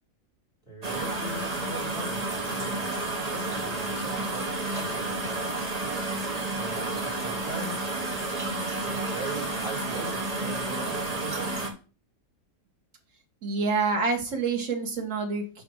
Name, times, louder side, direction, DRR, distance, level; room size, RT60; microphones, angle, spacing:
voice 1, 0.6-2.8 3.3-5.4 6.6-7.8 8.6-11.6, right 2 dB, 5° right, -3 dB, 4.6 m, -40 dB
sound 1, 0.8-11.7, right 2 dB, 30° right, 1.1 m, -31 dB
voice 2, 13.4-15.6, right 4 dB, 60° right, 1 dB, 1.9 m, -27 dB
5.6 x 4.2 x 6.2 m, 0.35 s
omnidirectional pair, 1.5 m